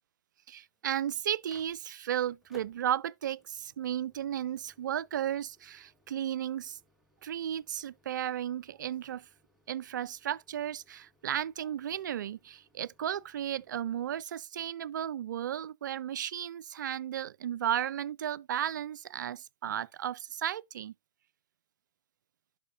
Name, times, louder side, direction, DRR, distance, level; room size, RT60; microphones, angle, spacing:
voice 1, 0.5-6.8 7.2-9.3 9.7-20.9, right 10 dB, 65° right, 0.3 m, -34 dB
Microwave oven, 0.6-14.2, left 2 dB, 5° right, 2.2 m, -64 dB
11.0 x 5.6 x 2.5 m
hypercardioid pair, 115°, 11 cm